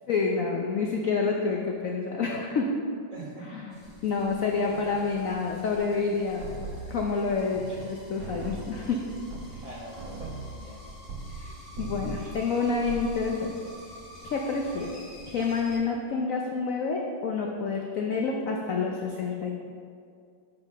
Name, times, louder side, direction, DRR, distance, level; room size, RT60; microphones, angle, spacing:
voice 1, 0.1-2.7 3.5-3.8 4.0-6.5 6.9-9.0 11.3-13.6 14.2-14.9 15.3-19.5, left 4 dB, 65° left, 0 dB, 0.8 m, -28 dB
voice 2, 3.1-3.6 4.4-4.8 9.6-10.8 14.7-15.0, right 2 dB, 25° right, -5 dB, 1.0 m, -44 dB
sound 1, 3.7-15.8, left 1 dB, 30° left, 1.6 m, -48 dB
sound 2, 6.4-7.9 8.2-11.5 11.7-12.3 12.7-13.2, right 3 dB, 55° right, 1.4 m, -39 dB
7.2 x 5.8 x 5.5 m, 2.3 s
omnidirectional pair, 2.1 m